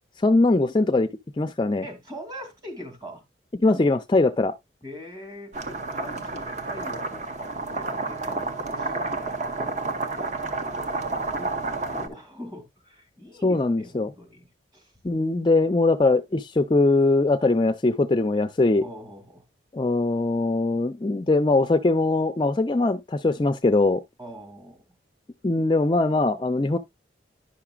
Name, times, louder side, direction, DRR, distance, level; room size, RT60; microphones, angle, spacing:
voice 1, 0.2-1.1 1.4-1.8 3.6-4.5 13.4-14.1 15.0-18.8 19.7-24.0 25.4-26.8, left 2 dB, 25° left, 0.4 m, -21 dB
voice 2, 1.8-3.2 4.8-9.8 10.2-10.3 11.2-14.5 14.7-14.9 18.8-19.4 24.2-24.8, equal, 20° right, 2.4 m, -42 dB
sound 1, 5.5-12.1, right 3 dB, 40° right, 0.9 m, -30 dB
10.5 x 5.9 x 2.3 m
head